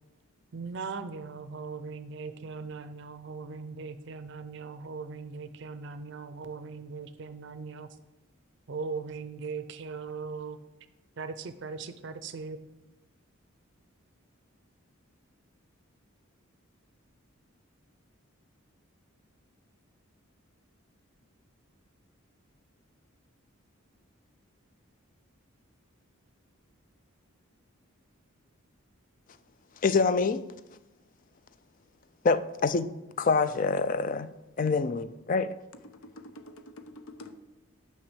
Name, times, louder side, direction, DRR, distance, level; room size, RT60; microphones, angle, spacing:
voice 1, 0.5-7.9 8.7-10.6 11.2-12.6, right 4 dB, 55° right, 0.5 m, -39 dB
voice 2, 29.8-30.4 32.2-32.9 33.2-34.3 34.6-35.6, left 4 dB, 40° left, 0.3 m, -26 dB
voice 3, 35.8-37.4, left 1 dB, 75° left, 0.6 m, -47 dB
6.0 x 5.8 x 6.2 m
head